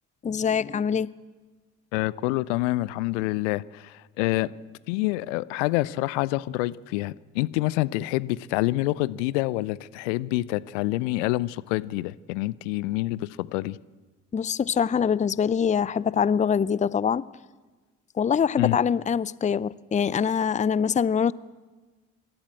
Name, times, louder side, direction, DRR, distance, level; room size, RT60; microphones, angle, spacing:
voice 1, 0.2-1.1 14.3-17.2 18.2-21.3, left 7 dB, 20° left, 0.6 m, -24 dB
voice 2, 1.9-4.5 4.9-13.8 18.6-18.8, left 19 dB, 70° left, 0.6 m, -27 dB
25.5 x 13.0 x 8.4 m
figure-of-eight pair, 40°, 38 cm